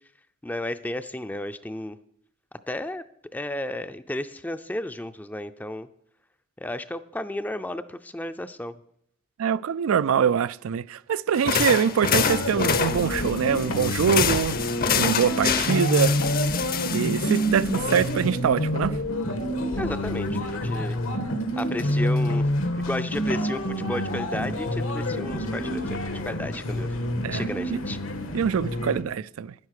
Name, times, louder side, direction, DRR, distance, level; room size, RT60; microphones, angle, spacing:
voice 1, 0.4-2.0 2.7-3.0 3.3-5.9 6.6-8.7 19.8-21.0 21.6-22.5 22.8-27.0 27.3-28.0, left 1 dB, 10° left, 0.4 m, -33 dB
voice 2, 9.4-14.6 14.9-16.1 16.9-19.0 27.2-27.8 28.3-29.5, right 7 dB, 85° right, 0.4 m, -24 dB
sound 1, 11.4-18.4, left 7 dB, 45° left, 0.7 m, -27 dB
sound 2, 12.2-29.0, equal, 80° left, 1.4 m, -28 dB
10.5 x 10.5 x 6.5 m
head